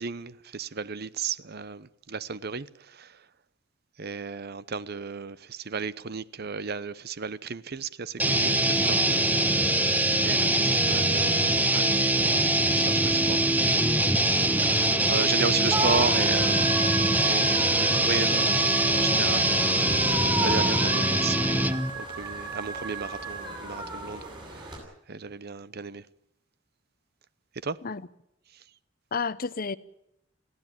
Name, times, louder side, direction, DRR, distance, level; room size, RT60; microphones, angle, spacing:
voice 1, 0.0-3.3 4.0-9.6 10.2-13.5 14.6-16.7 17.2-19.9 20.4-24.8 25.1-26.1 27.6-27.8 28.5-28.6, right 5 dB, 55° right, 0.8 m, -34 dB
sound 1, 8.2-21.9, right 1 dB, 10° right, 1.0 m, -23 dB
sound 2, 14.2-24.8, right 2 dB, 25° right, 8.0 m, -34 dB
voice 2, 14.9-15.3 27.8-28.0 29.1-29.8, left 5 dB, 50° left, 0.8 m, -32 dB
22.0 x 15.5 x 9.1 m
head